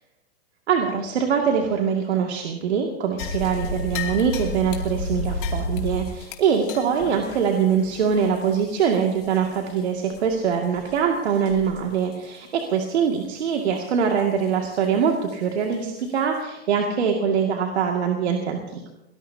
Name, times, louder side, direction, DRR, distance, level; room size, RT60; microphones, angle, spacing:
voice 1, 0.7-18.9, right 7 dB, 80° right, 1 dB, 2.3 m, -23 dB
sound 1, 3.2-9.8 10.1-10.2 10.8-11.0 11.5-11.8 12.1-12.2 12.8-12.9 15.3-15.4 16.0-16.1, left 1 dB, 50° left, 2.7 m, -31 dB
23.5 x 18.5 x 2.8 m, 0.93 s
hypercardioid pair, 145°, 32 cm